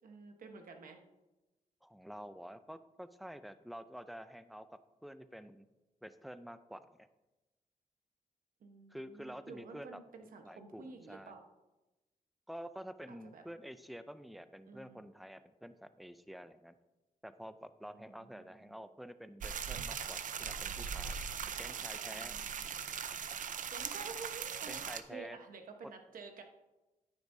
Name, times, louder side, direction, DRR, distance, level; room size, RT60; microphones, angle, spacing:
voice 1, 0.0-1.0 8.6-11.4 13.1-13.4 14.7-15.1 17.9-18.8 21.4-23.1 23.7-24.8 25.1-26.4, right 4 dB, 85° right, 4 dB, 1.1 m, -51 dB
voice 2, 1.8-5.6 6.0-7.1 8.9-10.0 10.4-11.3 12.5-16.8 17.2-21.2 21.6-22.4 24.7-25.4, equal, ahead, 11 dB, 0.4 m, -49 dB
sound 1, 19.4-25.0, right 7 dB, 70° right, 0.5 m, -40 dB
10.5 x 9.6 x 2.7 m, 1.1 s
wide cardioid pair, 130°, 14 cm